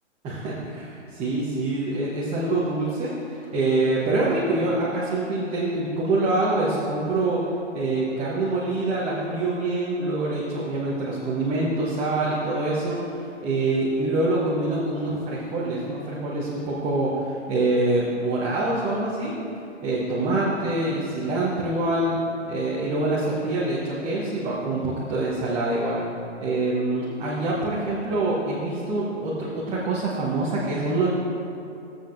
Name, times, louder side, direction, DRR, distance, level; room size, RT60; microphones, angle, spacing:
voice 1, 0.2-7.4 7.7-13.0 13.4-19.3 19.8-26.0 26.4-31.1, right 2 dB, 15° right, -7 dB, 1.0 m, -25 dB
16.5 x 7.7 x 2.6 m, 2.6 s
hypercardioid pair, 140°, 37 cm